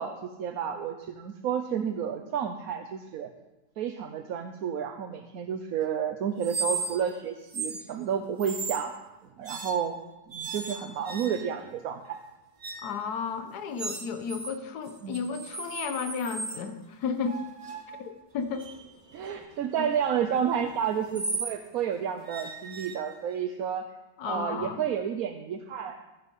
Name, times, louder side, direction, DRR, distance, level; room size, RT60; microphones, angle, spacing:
voice 1, 0.0-3.3 3.8-8.9 9.4-10.0 10.3-12.2 15.0-15.3 19.1-23.9 24.2-26.0, right 8 dB, 65° right, 6 dB, 1.1 m, -31 dB
sound 1, 6.4-7.1 7.5-7.8 8.4-8.9 9.4-9.9 10.3-11.7 12.6-13.0 13.8-14.5 14.9-16.6 17.2-21.6 22.2-23.4, right 4 dB, 30° right, 0.6 m, -37 dB
voice 2, 12.8-17.4 18.0-18.7 24.2-24.8, left 5 dB, 70° left, 7 dB, 1.5 m, -33 dB
13.5 x 8.2 x 5.4 m, 1.1 s
omnidirectional pair, 1.8 m